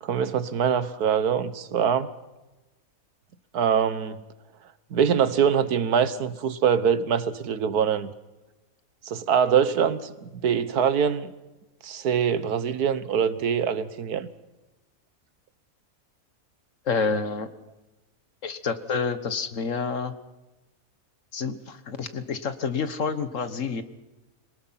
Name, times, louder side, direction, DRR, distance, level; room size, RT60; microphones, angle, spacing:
voice 1, 0.0-2.1 3.5-4.2 4.9-8.1 9.0-11.3 11.8-14.3, right 7 dB, 90° right, 14 dB, 1.6 m, -24 dB
voice 2, 16.8-17.5 18.4-20.1 21.3-23.8, left 5 dB, 60° left, 11 dB, 1.6 m, -28 dB
27.5 x 19.5 x 5.8 m, 1.1 s
omnidirectional pair, 1.6 m